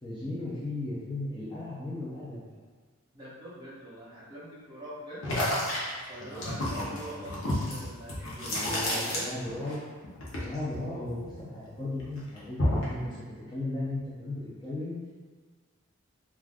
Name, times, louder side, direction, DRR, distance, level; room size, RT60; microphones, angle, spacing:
voice 1, 0.0-2.4 6.3-7.3 8.5-9.8 10.4-15.0, left 2 dB, 20° left, -9 dB, 0.5 m, -36 dB
voice 2, 3.1-5.2 6.1-9.3, right 1 dB, 20° right, -9 dB, 0.9 m, -43 dB
sound 1, 5.2-9.8 10.0-11.7 12.0-13.0, left 1 dB, 65° left, 0.8 m, -31 dB
2.5 x 2.4 x 3.4 m, 1.5 s
head